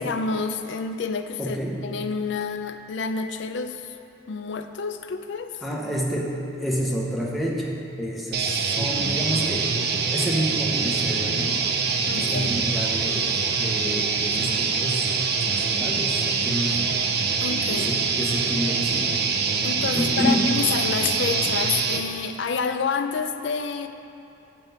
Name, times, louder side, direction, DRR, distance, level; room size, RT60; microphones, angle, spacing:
voice 1, 0.0-1.6 1.8-4.0 4.3-5.6 12.1-12.5 17.4-17.9 19.6-23.9, left 5 dB, 65° left, 8 dB, 0.4 m, -28 dB
voice 2, 1.4-1.8 5.6-9.7 10.1-11.6 12.1-17.1 17.6-19.3 19.9-20.5, equal, ahead, -3 dB, 0.8 m, -29 dB
sound 1, 8.3-22.0, right 5 dB, 50° right, 0.5 m, -24 dB
7.4 x 4.5 x 6.6 m, 3.0 s
head